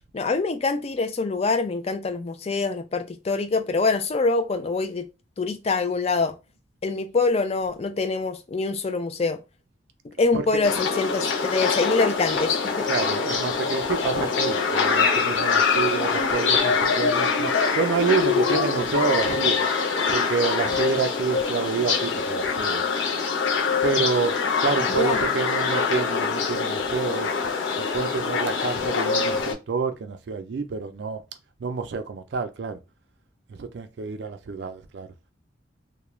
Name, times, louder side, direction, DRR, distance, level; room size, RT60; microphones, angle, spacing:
voice 1, 0.1-5.1 5.4-6.4 6.8-9.4 10.2-12.9 25.0-25.2, left 3 dB, 30° left, 0.3 m, -25 dB
voice 2, 10.3-10.7 12.9-19.7 20.1-22.8 23.8-24.4 24.6-27.3 27.8-31.2 31.6-32.8 33.5-35.1, right 5 dB, 60° right, 0.4 m, -28 dB
sound 1, 10.6-29.5, left 5 dB, 75° left, 0.6 m, -24 dB
2.3 x 2.1 x 3.0 m
head